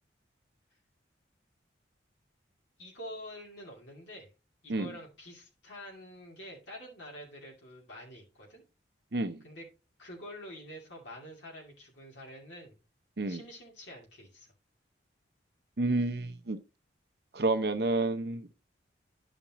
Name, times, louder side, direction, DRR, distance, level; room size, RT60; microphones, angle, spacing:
voice 1, 2.8-4.3 4.6-8.6 9.4-9.6 10.0-12.8 13.3-14.5, equal, 80° left, 2.6 m, -47 dB
voice 2, 9.1-9.4 13.2-13.4 15.8-16.6 17.3-18.5, right 2 dB, 60° right, 0.7 m, -29 dB
11.5 x 5.1 x 3.0 m
head